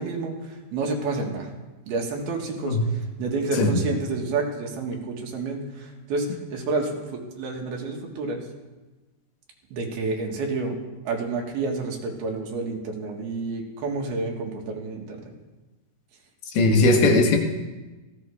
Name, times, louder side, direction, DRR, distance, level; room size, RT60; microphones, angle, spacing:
voice 1, 0.0-1.5 1.9-8.5 9.7-10.8 11.1-15.3, right 3 dB, 80° right, 1 dB, 3.8 m, -29 dB
voice 2, 16.5-17.4, left 2 dB, 80° left, 2 dB, 3.4 m, -18 dB
18.0 x 15.5 x 3.6 m, 1.2 s
omnidirectional pair, 4.4 m